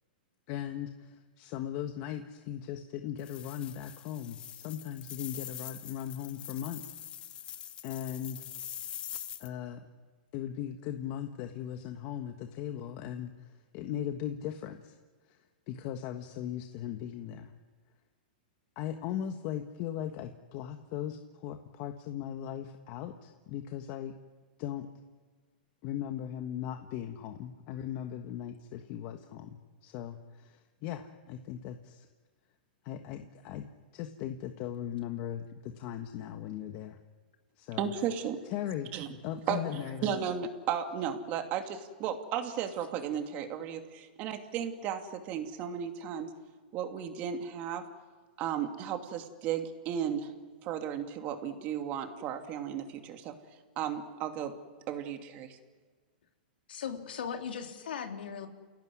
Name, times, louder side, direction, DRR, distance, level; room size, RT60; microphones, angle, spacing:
voice 1, 0.5-7.0 7.8-8.5 9.4-9.8 10.3-15.0 15.3-15.4 15.7-17.5 18.7-24.1 24.6-24.9 25.8-32.1 32.8-33.6 33.9-37.0 37.6-37.9 38.5-38.9 39.2-40.2, left 10 dB, 35° left, 6 dB, 1.5 m, -38 dB
sound 1, 3.2-9.5, left 10 dB, 20° left, 0.9 m, -44 dB
voice 2, 37.8-38.4 38.9-39.1 39.5-46.3 46.7-47.8 48.4-50.3 50.6-53.3 53.8-54.5 54.9-55.6, right 8 dB, 30° right, 6 dB, 2.6 m, -34 dB
voice 3, 56.7-58.5, left 7 dB, 85° left, 4 dB, 3.6 m, -38 dB
29.5 x 17.0 x 9.7 m, 1.5 s
hypercardioid pair, 160°, 5 cm